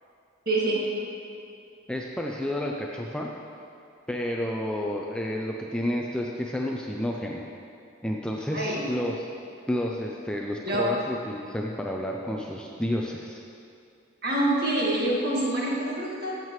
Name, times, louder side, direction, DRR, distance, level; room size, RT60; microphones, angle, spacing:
voice 1, 0.5-0.8 8.5-8.9 10.6-10.9 14.2-16.4, right 1 dB, 50° right, -5 dB, 1.9 m, -26 dB
voice 2, 1.9-3.3 4.1-7.4 8.0-9.3 9.7-13.4, left 1 dB, 5° left, -1 dB, 0.5 m, -30 dB
15.5 x 7.5 x 3.2 m, 2.5 s
head